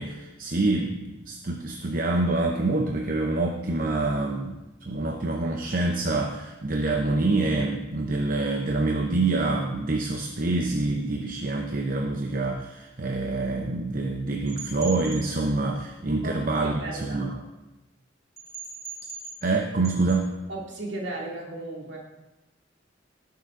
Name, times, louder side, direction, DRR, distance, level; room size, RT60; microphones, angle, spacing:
voice 1, 0.0-4.6 4.9-17.3 19.4-20.3, right 2 dB, 45° right, 2 dB, 0.8 m, -26 dB
sound 1, 14.5-15.3 18.4-19.6 19.8-20.2, right 4 dB, 15° left, 2.3 m, -39 dB
voice 2, 16.2-17.4 20.5-22.0, right 2 dB, 65° right, -2 dB, 2.4 m, -36 dB
18.0 x 6.8 x 3.8 m, 1.0 s
head